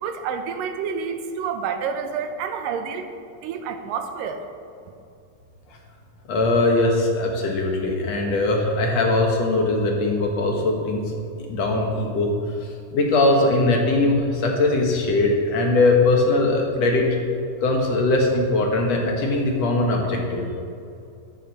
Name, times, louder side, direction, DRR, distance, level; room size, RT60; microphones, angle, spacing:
voice 1, 0.0-3.1 3.4-4.4, right 6 dB, 85° right, 6 dB, 2.6 m, -29 dB
voice 2, 6.3-11.0 11.5-12.3 12.9-17.1 17.6-20.5, left 2 dB, 60° left, 1 dB, 2.3 m, -20 dB
12.5 x 12.5 x 4.2 m, 2.5 s
omnidirectional pair, 3.8 m